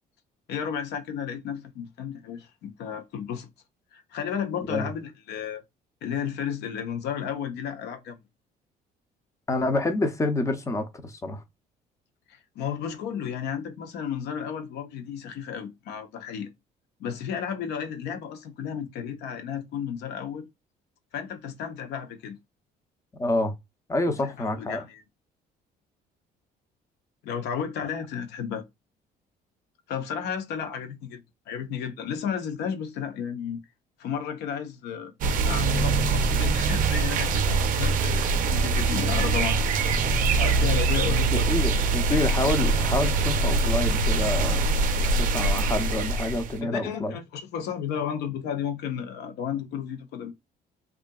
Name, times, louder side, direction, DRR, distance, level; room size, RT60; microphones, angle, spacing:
voice 1, 0.5-3.5 3.9-5.6 6.0-8.2 12.3-16.5 17.0-20.5 21.1-22.4 24.1-25.0 27.2-28.6 29.9-33.6 34.0-35.1 35.5-39.6 40.4-41.5 42.1-42.5 46.6-50.3, left 8 dB, 80° left, 0.7 m, -33 dB
voice 2, 9.5-11.4 23.2-23.5 23.9-24.8 41.3-44.7 45.1-47.2, left 2 dB, 20° left, 0.5 m, -27 dB
sound 1, 35.2-46.6, right 3 dB, 55° right, 0.5 m, -23 dB
2.7 x 2.4 x 2.2 m
cardioid pair, 110°, 17 cm